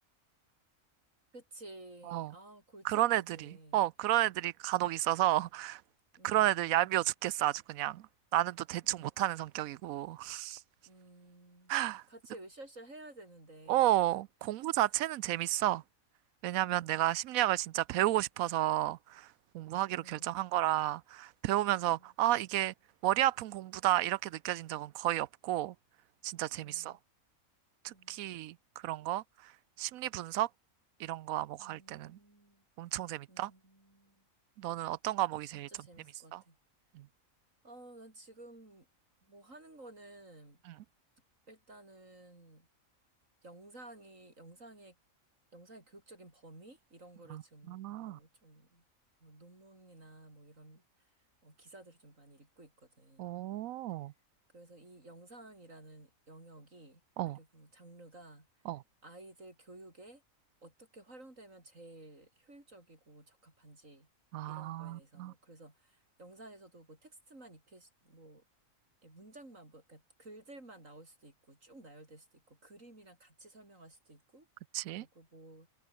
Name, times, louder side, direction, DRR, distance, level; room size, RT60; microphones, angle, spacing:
voice 1, 1.3-3.1 3.3-3.8 6.2-6.9 8.8-9.1 10.9-11.7 12.1-14.1 14.6-14.8 19.9-20.4 21.9-22.1 26.5-27.0 27.9-28.3 31.6-32.6 33.3-34.3 35.5-36.6 37.6-38.9 39.2-40.6 41.5-42.7 43.4-44.9 45.5-48.8 49.2-50.8 51.4-53.3 54.5-57.0 57.3-58.5 59.0-60.2 60.6-64.1 64.4-68.4 69.0-74.5 75.0-75.7, right 2 dB, 70° right, 6.6 m, -54 dB
voice 2, 2.8-3.2 3.7-5.8 6.2-8.0 8.3-10.6 11.7-12.0 13.7-15.8 16.4-19.3 19.5-22.7 23.0-25.7 26.2-27.0 27.8-28.5 28.8-29.5 29.8-30.5 31.0-32.2 32.8-33.5 34.6-35.7 36.3-36.4 36.9-37.1 40.7-40.8 47.3-47.4 47.7-48.2 53.2-54.1 57.2-57.4 58.7-58.8 64.3-65.3 74.7-75.0, right 14 dB, 90° right, 1.0 m, -32 dB
omnidirectional pair, 1.4 m